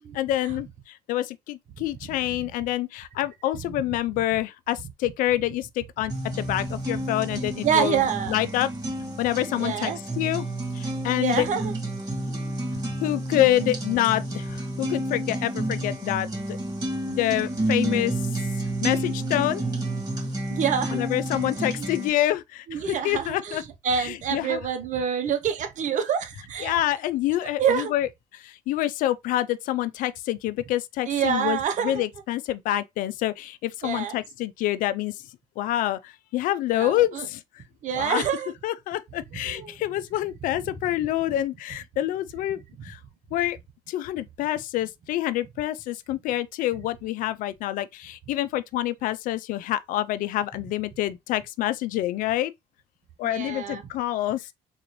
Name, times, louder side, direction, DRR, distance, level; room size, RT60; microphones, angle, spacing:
voice 1, 0.1-8.7 9.2-10.5 10.7-11.5 13.0-16.6 17.1-18.2 18.8-19.6 20.9-23.6 24.0-24.6 26.6-28.1 28.3-35.2 35.6-37.4 38.0-38.3 38.6-43.0 43.3-43.6 43.9-52.5 53.2-54.5, left 14 dB, 70° left, 0.4 m, -27 dB
sound 1, 6.1-22.1, right 1 dB, 25° right, 2.2 m, -30 dB
voice 2, 7.6-8.4 9.6-10.2 11.2-11.7 12.1-12.5 20.5-21.0 21.6-21.9 22.7-26.8 27.4-27.9 31.1-32.0 33.8-34.2 36.8-37.3 37.8-38.5 39.4-39.7 53.2-53.8, right 7 dB, 60° right, 0.9 m, -27 dB
3.9 x 2.5 x 3.0 m
supercardioid pair, 65°, 14 cm